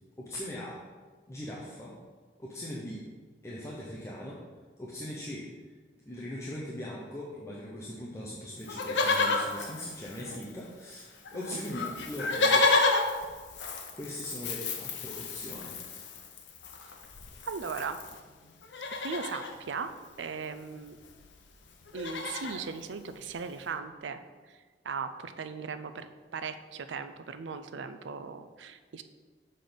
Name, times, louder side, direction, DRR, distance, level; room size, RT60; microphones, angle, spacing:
voice 1, 0.2-0.8 1.3-1.9 2.4-3.0 3.4-4.4 4.8-5.5 6.1-12.7 13.9-16.1, left 1 dB, 15° left, -6 dB, 0.8 m, -40 dB
Livestock farm animals working animals, 8.7-10.7 10.9-11.0 11.3-18.2 18.6-19.5 20.8-20.9 21.0-21.3 21.7-22.6 23.2-23.3, left 3 dB, 90° left, 0.7 m, -31 dB
voice 2, 17.4-18.0 19.0-19.9 20.2-21.0 21.9-24.2 24.5-24.6 24.8-29.0, right 5 dB, 90° right, 9 dB, 0.4 m, -38 dB
6.6 x 3.9 x 5.1 m, 1.4 s
head